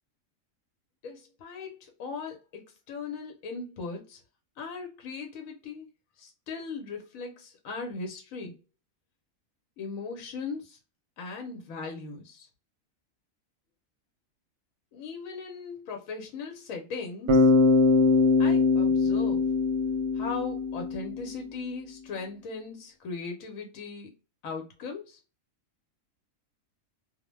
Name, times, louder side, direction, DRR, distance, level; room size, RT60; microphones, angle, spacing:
voice 1, 1.0-4.2 4.6-5.9 6.2-8.6 9.8-10.8 11.2-12.5 14.9-17.5 18.4-19.5 20.1-24.1 24.4-25.2, left 4 dB, 85° left, 1.0 m, -38 dB
Bass guitar, 17.3-21.3, left 3 dB, 65° right, 0.8 m, -22 dB
2.4 x 2.1 x 3.0 m
omnidirectional pair, 1.4 m